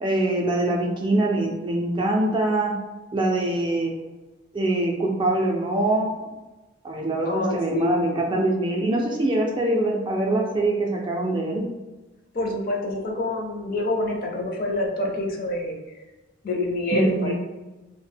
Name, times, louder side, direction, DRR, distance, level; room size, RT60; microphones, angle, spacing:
voice 1, 0.0-2.7 3.1-3.9 4.5-6.1 6.8-11.6 16.9-17.3, right 2 dB, 25° right, -1 dB, 0.3 m, -23 dB
voice 2, 7.2-8.0 12.3-15.8 16.4-17.3, left 1 dB, 45° left, 0 dB, 0.4 m, -27 dB
2.1 x 2.0 x 3.3 m, 1.1 s
head